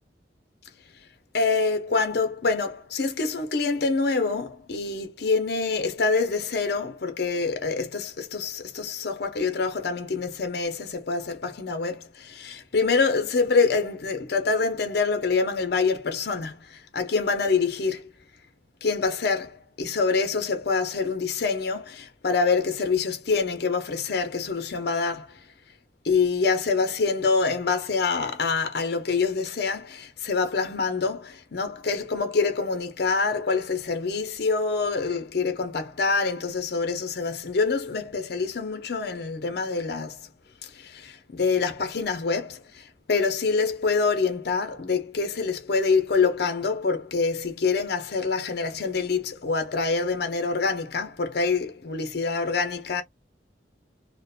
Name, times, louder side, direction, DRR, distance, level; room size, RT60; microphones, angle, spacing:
voice 1, 1.3-18.1 18.8-25.4 26.0-40.3 40.6-53.0, left 4 dB, 65° left, 0.6 m, -26 dB
2.5 x 2.1 x 2.6 m
head